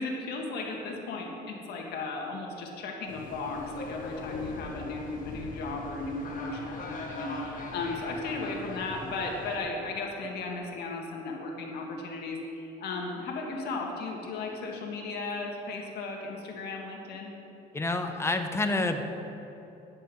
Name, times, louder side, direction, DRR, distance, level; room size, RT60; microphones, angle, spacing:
voice 1, 0.0-17.3, left 3 dB, 75° left, 1 dB, 1.8 m, -35 dB
sound 1, 3.1-9.6, left 2 dB, 50° left, 1.7 m, -41 dB
voice 2, 17.7-19.0, left 2 dB, 15° left, 7 dB, 0.9 m, -28 dB
10.0 x 8.8 x 6.2 m, 3.0 s
cardioid pair, 110°, 17 cm